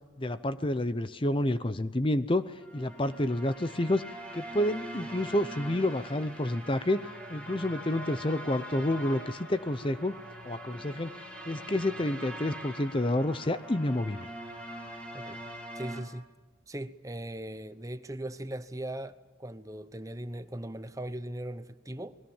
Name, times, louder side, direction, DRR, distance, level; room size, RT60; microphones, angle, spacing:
voice 1, 0.2-10.1 10.4-14.3, left 1 dB, 25° left, 0.7 m, -29 dB
sound 1, 2.5-16.0, right 1 dB, 5° left, 4.7 m, -43 dB
voice 2, 15.7-16.3 16.7-22.2, right 1 dB, 15° right, 0.9 m, -39 dB
30.0 x 20.5 x 7.3 m
head